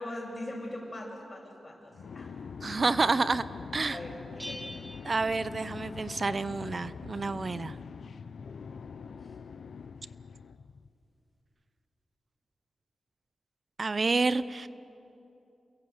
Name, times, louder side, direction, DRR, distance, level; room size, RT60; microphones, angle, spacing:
voice 1, 0.0-2.3 3.8-4.8 9.2-9.3, left 1 dB, 25° left, -6 dB, 7.0 m, -41 dB
sound 1, 1.9-10.9, left 6 dB, 75° left, 0.7 m, -43 dB
voice 2, 2.6-3.4 3.7-4.0 5.0-7.7 13.8-14.7, right 3 dB, 45° right, 15 dB, 0.7 m, -29 dB
Bell, 4.4-6.2, equal, 10° right, 2.9 m, -45 dB
29.5 x 22.0 x 7.9 m, 2.8 s
cardioid pair, 70°, 0 cm